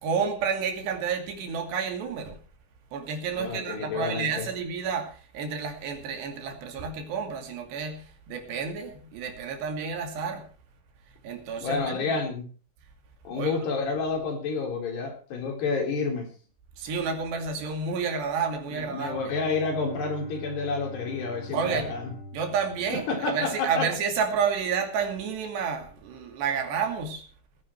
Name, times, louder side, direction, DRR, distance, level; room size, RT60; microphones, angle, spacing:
voice 1, 0.0-2.4 2.9-10.5 11.2-12.2 13.3-13.7 16.8-19.3 21.5-21.9 22.3-27.2, right 6 dB, 85° right, 4 dB, 4.7 m, -30 dB
voice 2, 3.4-4.5 11.6-12.5 13.2-16.3 18.7-22.1 22.9-23.9, left 4 dB, 75° left, 2 dB, 5.8 m, -29 dB
Bowed string instrument, 18.9-23.8, left 1 dB, 60° left, 5.2 m, -44 dB
19.0 x 10.5 x 4.6 m, 0.39 s
omnidirectional pair, 4.7 m